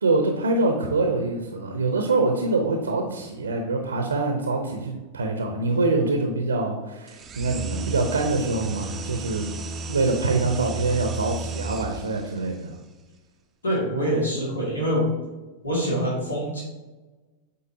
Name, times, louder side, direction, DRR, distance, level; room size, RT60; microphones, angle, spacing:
voice 1, 0.0-9.5 9.9-12.8, right 3 dB, 75° right, 4 dB, 0.7 m, -25 dB
sound 1, 7.1-12.3, right 3 dB, 25° right, 0.5 m, -34 dB
voice 2, 13.6-15.1 15.6-16.6, equal, 75° left, -5 dB, 2.0 m, -25 dB
8.5 x 4.0 x 2.8 m, 1.2 s
figure-of-eight pair, 90°, 0 cm